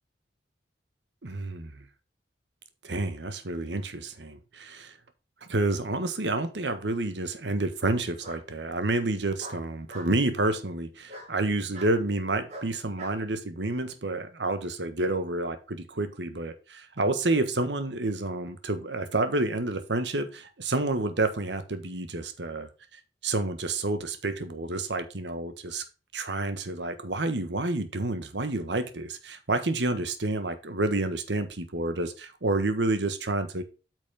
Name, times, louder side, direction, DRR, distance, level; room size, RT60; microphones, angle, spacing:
voice 1, 1.2-1.8 2.8-4.9 5.5-22.7 23.2-25.8 26.1-33.6, right 2 dB, 80° right, 1.3 m, -29 dB
Bark, 6.1-6.7 8.2-8.4 9.4-10.1 11.1-11.3 11.7-11.9 12.5-13.2, right 1 dB, 40° right, 3.2 m, -43 dB
8.7 x 6.2 x 3.5 m
head